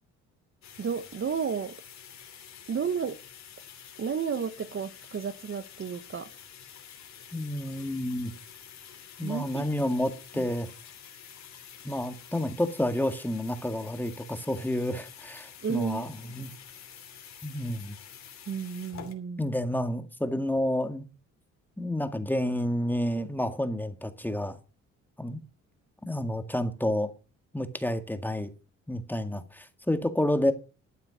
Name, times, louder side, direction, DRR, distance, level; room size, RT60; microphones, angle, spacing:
sound 1, 0.6-19.1, left 8 dB, 65° left, 3.0 m, -48 dB
voice 1, 0.8-1.8 2.7-3.2 4.0-6.3 9.2-9.6 10.3-10.4 15.6-16.1 18.5-19.5, right 6 dB, 45° right, 1.2 m, -32 dB
voice 2, 7.3-8.3 9.2-10.7 11.8-16.5 17.4-18.0 19.4-21.1 21.8-24.6 25.2-25.4 26.1-27.1 27.5-28.5 28.9-30.5, left 1 dB, 5° left, 1.9 m, -30 dB
12.5 x 8.8 x 6.3 m
cardioid pair, 90°, 30 cm